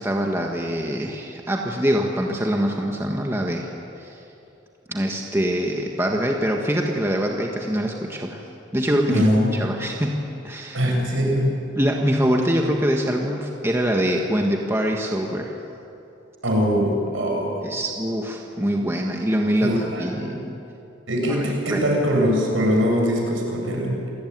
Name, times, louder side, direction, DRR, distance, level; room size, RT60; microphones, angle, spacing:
voice 1, 0.0-3.7 4.0-4.2 4.9-8.4 8.7-9.2 9.5-10.9 11.7-15.6 17.6-20.6 21.3-21.8, equal, 15° right, 1 dB, 1.5 m, -24 dB
voice 2, 9.1-9.6 10.7-11.5 16.4-17.6 19.6-20.4 21.1-24.0, equal, 90° right, 0 dB, 7.2 m, -22 dB
28.0 x 18.5 x 9.5 m, 2.8 s
head